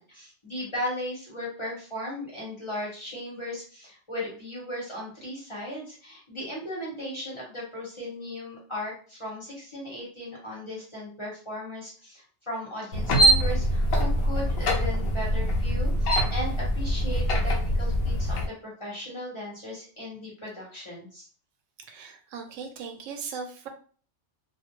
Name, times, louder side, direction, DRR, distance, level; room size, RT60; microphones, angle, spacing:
voice 1, 0.0-21.3, left 1 dB, 25° left, -5 dB, 0.9 m, -37 dB
sound 1, 12.9-18.5, equal, 65° left, 0.7 m, -24 dB
voice 2, 21.9-23.7, right 5 dB, 85° right, 5 dB, 0.9 m, -38 dB
2.3 x 2.0 x 2.9 m, 0.42 s
omnidirectional pair, 1.3 m